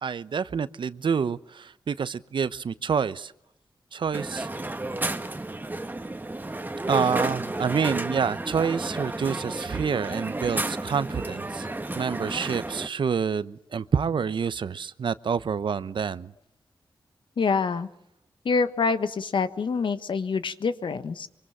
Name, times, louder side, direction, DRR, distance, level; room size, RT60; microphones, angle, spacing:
voice 1, 0.0-3.3 3.9-4.5 6.9-11.7 11.9-16.3, right 6 dB, 70° right, 15 dB, 0.9 m, -27 dB
Crowd, 4.1-12.9, right 2 dB, 20° right, 1.6 m, -32 dB
voice 2, 17.4-17.9 18.4-21.3, left 5 dB, 75° left, 11 dB, 1.5 m, -26 dB
25.5 x 24.0 x 7.4 m, 0.75 s
cardioid pair, 75°, 8 cm